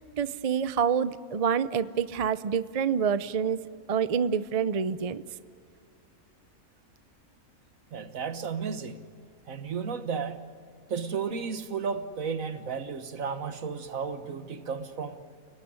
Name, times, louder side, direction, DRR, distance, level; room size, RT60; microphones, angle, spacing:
voice 1, 0.0-3.6 3.9-5.2, right 7 dB, 40° right, 14 dB, 0.6 m, -27 dB
voice 2, 7.9-9.0 9.5-10.5 10.9-15.2, right 6 dB, 70° right, 10 dB, 1.7 m, -33 dB
29.5 x 18.5 x 9.7 m, 2.3 s
omnidirectional pair, 1.5 m